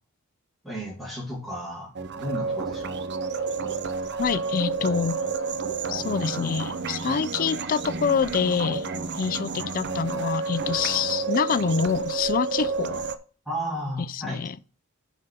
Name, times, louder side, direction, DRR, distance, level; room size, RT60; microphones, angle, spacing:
voice 1, 0.6-2.9 13.5-14.4, equal, ahead, 2.3 m, -33 dB
sound 1, 2.0-13.2, right 4 dB, 50° right, 0.6 m, -30 dB
voice 2, 4.2-5.2 5.9-8.8 9.2-13.0 14.1-14.6, left 6 dB, 40° left, 0.3 m, -26 dB
7.5 x 4.1 x 5.2 m
head